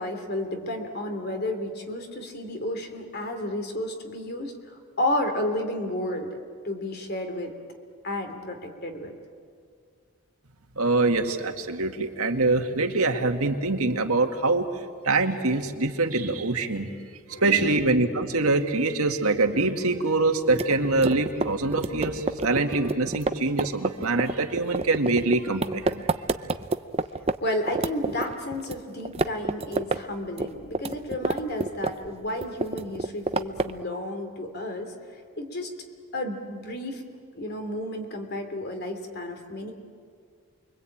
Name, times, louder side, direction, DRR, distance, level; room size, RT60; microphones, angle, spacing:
voice 1, 0.0-6.4 6.6-7.5 8.0-9.1 17.3-17.7 27.4-34.9 35.4-35.7 36.1-37.0 37.3-39.7, left 1 dB, 45° left, 5 dB, 3.1 m, -32 dB
voice 2, 10.8-14.7 15.0-16.9 17.3-26.0, right 3 dB, 85° right, 4 dB, 2.0 m, -24 dB
sound 1, 20.5-27.4 27.7-28.8 29.0-30.0 30.3-32.1 32.4-33.8, right 3 dB, 30° right, 0.7 m, -28 dB
29.0 x 23.0 x 8.7 m, 2.1 s
head